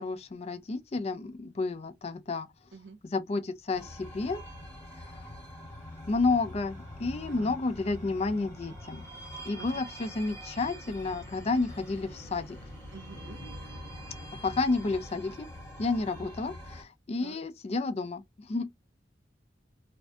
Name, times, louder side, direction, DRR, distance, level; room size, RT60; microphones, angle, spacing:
voice 1, 0.0-2.5 3.0-4.4 6.1-9.1 9.5-12.6 14.4-15.5 15.8-18.2 18.5-18.7, left 3 dB, 35° left, 0.4 m, -31 dB
sound 1, 3.7-16.8, equal, 15° left, 1.0 m, -44 dB
voice 2, 12.9-13.4 17.2-17.4, right 4 dB, 75° right, 0.5 m, -47 dB
2.5 x 2.2 x 2.5 m
head